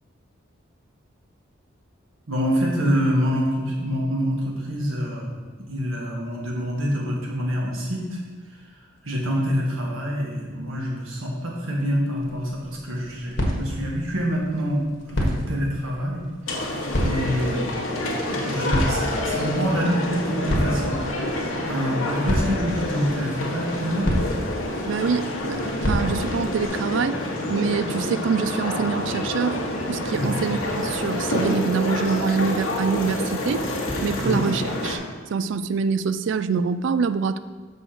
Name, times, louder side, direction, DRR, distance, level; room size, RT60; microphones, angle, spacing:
voice 1, 2.3-5.4 5.7-8.2 9.0-14.8 15.1-16.3 17.0-17.8 18.3-21.0 21.6-24.1 30.1-30.3 34.2-34.4, equal, 85° right, -2 dB, 1.7 m, -26 dB
sound 1, 12.2-26.7, equal, 60° left, 1.4 m, -30 dB
sound 2, 16.5-35.0, left 1 dB, 85° left, 1.3 m, -28 dB
voice 2, 24.9-27.2 27.5-29.6 29.9-33.6 34.0-35.0 35.3-37.4, right 5 dB, 65° right, 13 dB, 0.3 m, -25 dB
6.8 x 4.2 x 5.9 m, 1.5 s
head